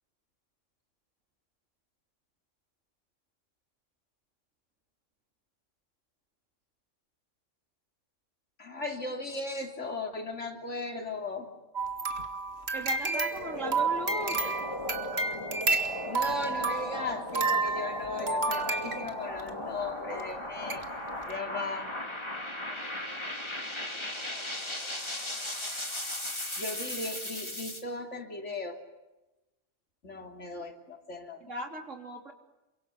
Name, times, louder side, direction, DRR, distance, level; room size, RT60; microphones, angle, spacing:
voice 1, 8.6-11.5 16.1-20.9 21.3-21.9 26.6-28.8 30.0-31.4, left 2 dB, 75° left, 4 dB, 3.5 m, -37 dB
sound 1, 11.7-19.5 20.2-20.3 20.7-20.8 21.2-21.3, right 3 dB, 60° right, 2.2 m, -31 dB
voice 2, 12.7-14.6 31.4-32.3, right 1 dB, 85° right, 4 dB, 3.8 m, -38 dB
sound 2, 13.2-27.8, left 1 dB, 20° left, 2.7 m, -37 dB
28.5 x 24.5 x 8.4 m, 1.0 s
omnidirectional pair, 1.3 m